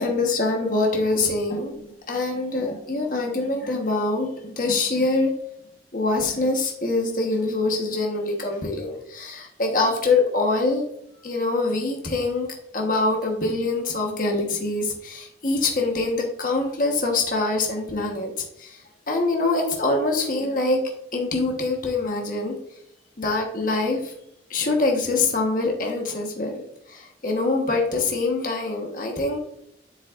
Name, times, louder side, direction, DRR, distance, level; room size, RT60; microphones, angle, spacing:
voice 1, 0.0-5.3 5.9-10.9 11.2-12.5 12.7-18.8 19.1-20.8 21.1-22.5 23.2-24.1 24.5-29.4, left 3 dB, 45° left, 1 dB, 1.2 m, -24 dB
8.0 x 7.3 x 2.5 m, 0.75 s
head